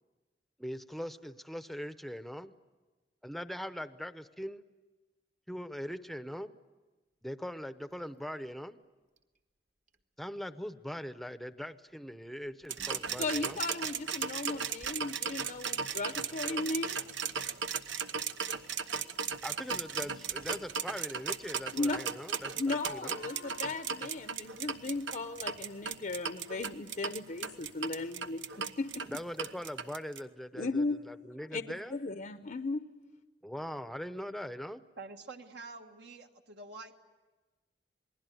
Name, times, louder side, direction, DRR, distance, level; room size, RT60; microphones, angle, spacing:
voice 1, 0.6-2.5 3.2-4.6 5.5-6.6 7.2-8.8 10.2-13.6 19.4-23.2 29.1-32.0 33.4-34.8, equal, ahead, 11 dB, 0.8 m, -41 dB
sound 1, 7.9-8.5 8.8-8.9 9.2-9.4 9.9-10.0 12.4-15.0 16.7-17.4 18.2-18.3 18.5-18.6 19.2-20.9 23.1-24.0 25.3-25.4 26.0-26.1, right 1 dB, 45° right, 1.5 m, -58 dB
sound 2, 12.7-30.2, right 6 dB, 80° right, 1.1 m, -36 dB
voice 2, 13.2-17.0 21.7-22.0 22.6-29.1 30.5-31.0 31.5-31.6 31.9-32.9, left 3 dB, 45° left, 9 dB, 0.8 m, -36 dB
Gong, 23.0-25.9, left 5 dB, 70° left, 1.0 m, -56 dB
voice 3, 35.0-37.0, right 3 dB, 65° right, 3 dB, 1.6 m, -47 dB
28.0 x 20.0 x 9.3 m, 1.2 s
head